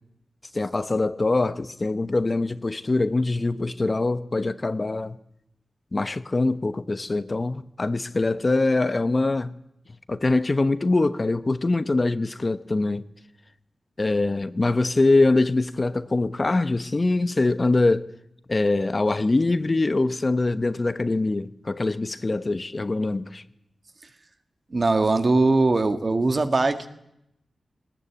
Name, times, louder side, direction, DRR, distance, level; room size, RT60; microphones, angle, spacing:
voice 1, 0.5-5.2 5.9-9.6 10.1-13.0 14.0-18.1 18.5-23.4, left 2 dB, 35° left, 1.1 m, -23 dB
voice 2, 24.7-26.9, right 3 dB, 45° right, 1.7 m, -21 dB
20.0 x 19.5 x 8.5 m
wide cardioid pair, 80°, 0 cm